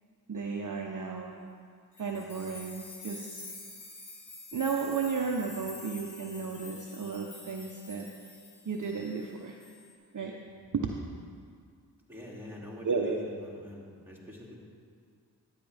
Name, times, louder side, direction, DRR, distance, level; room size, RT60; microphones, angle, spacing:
voice 1, 0.3-1.3 2.0-3.4 4.5-8.1 8.6-9.6 10.1-10.4 10.7-10.9 12.8-13.2, right 5 dB, 45° right, 1 dB, 0.8 m, -33 dB
sound 1, 2.0-9.3 9.6-9.9, left 3 dB, 70° left, 2.0 m, -48 dB
voice 2, 12.1-14.6, left 1 dB, 5° right, -4 dB, 2.6 m, -45 dB
12.0 x 9.2 x 3.5 m, 2.1 s
cardioid pair, 45°, 43 cm